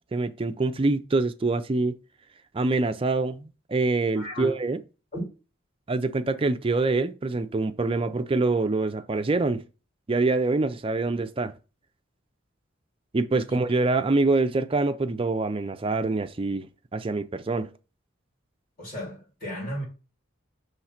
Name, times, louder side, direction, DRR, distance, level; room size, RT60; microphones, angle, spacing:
voice 1, 0.1-1.9 2.5-4.8 5.9-9.6 10.1-11.5 13.1-17.7, right 3 dB, 25° right, 0.4 m, -25 dB
voice 2, 4.1-4.5 5.1-5.3 13.5-13.6 18.8-19.8, equal, 45° left, 3.5 m, -34 dB
6.1 x 3.2 x 5.7 m
head